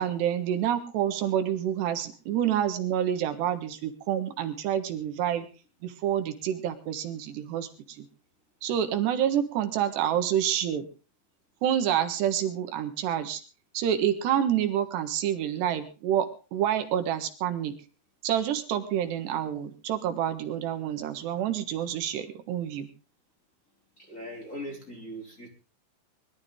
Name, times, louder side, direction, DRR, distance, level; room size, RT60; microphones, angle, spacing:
voice 1, 0.0-5.5 5.8-8.1 8.6-10.9 11.6-13.4 13.7-17.8 18.2-22.9, right 10 dB, 80° right, 8 dB, 3.7 m, -28 dB
voice 2, 24.0-25.5, equal, 20° left, -1 dB, 2.9 m, -40 dB
22.5 x 12.5 x 3.7 m, 0.35 s
omnidirectional pair, 4.8 m